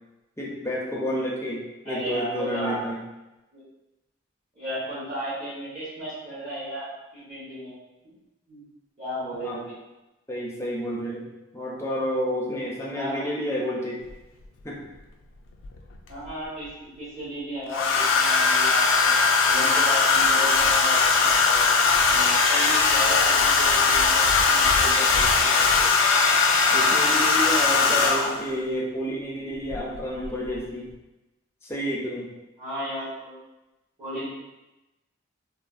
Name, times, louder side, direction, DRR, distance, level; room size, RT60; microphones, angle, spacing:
voice 1, 0.4-3.0 9.4-9.6 10.3-14.1 14.6-14.8 26.7-30.9 31.6-32.3, equal, 15° left, -4 dB, 0.4 m, -30 dB
voice 2, 1.8-2.8 3.5-3.6 4.5-7.7 8.0-8.1 8.5-8.6 9.0-9.7 12.9-13.3 16.1-19.1 19.5-25.9 27.6-28.4 32.6-33.4 34.0-34.2, equal, 40° right, -13 dB, 1.1 m, -34 dB
Domestic sounds home sounds, 14.1-14.2 15.6-16.3 17.7-28.5 29.7-30.0 30.2-30.6, left 4 dB, 85° left, 0.3 m, -20 dB
3.1 x 2.0 x 2.4 m, 1.0 s
head